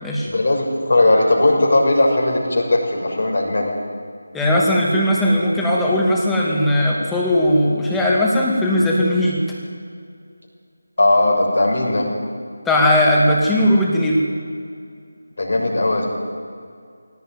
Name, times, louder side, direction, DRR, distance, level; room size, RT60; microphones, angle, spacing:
voice 1, 0.2-3.7 11.0-12.1 15.4-16.1, left 2 dB, 55° left, 0 dB, 6.6 m, -17 dB
voice 2, 4.3-9.4 12.6-14.2, left 1 dB, 5° left, -4 dB, 2.5 m, -18 dB
21.0 x 18.0 x 9.5 m, 2.3 s
figure-of-eight pair, 165°, 0 cm